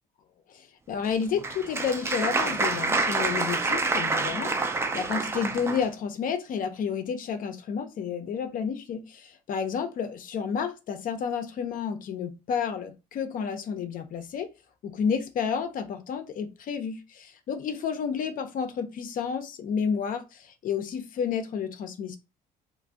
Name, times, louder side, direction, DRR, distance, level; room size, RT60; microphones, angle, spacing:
voice 1, 0.5-14.5 14.8-22.2, left 6 dB, 55° left, 0.6 m, -31 dB
Applause, 1.0-5.9, right 3 dB, 15° right, 0.3 m, -27 dB
2.5 x 2.2 x 3.3 m
cardioid pair, 110°, 17 cm